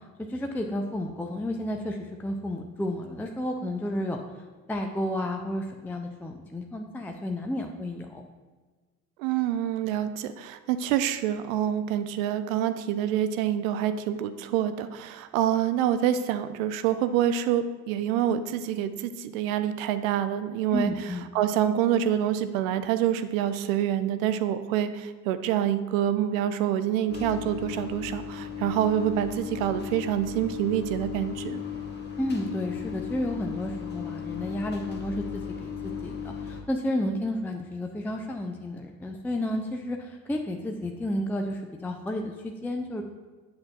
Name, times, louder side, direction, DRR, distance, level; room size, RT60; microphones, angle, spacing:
voice 1, 0.3-4.2 4.7-8.2 20.7-21.3 32.2-43.0, left 1 dB, 5° left, 3 dB, 0.4 m, -31 dB
voice 2, 9.2-31.6, right 10 dB, 65° right, 11 dB, 0.5 m, -27 dB
sound 1, 27.1-36.6, left 7 dB, 25° left, 1.2 m, -36 dB
8.5 x 7.3 x 2.4 m, 1.4 s
figure-of-eight pair, 50°, 44 cm